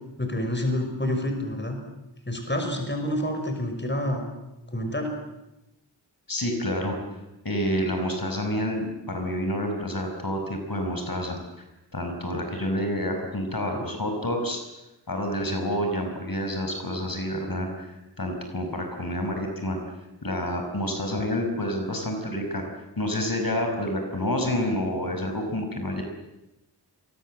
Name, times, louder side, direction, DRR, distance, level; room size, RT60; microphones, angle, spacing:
voice 1, 0.2-1.8 2.3-4.2 4.7-5.1, left 1 dB, 25° left, 4 dB, 5.8 m, -28 dB
voice 2, 6.3-7.0 7.4-11.4 11.9-14.6 15.1-17.9 18.2-19.8 20.2-22.6 23.0-26.0, left 1 dB, 50° left, 4 dB, 5.6 m, -28 dB
28.5 x 23.5 x 7.7 m, 0.97 s
wide cardioid pair, 65°, 43 cm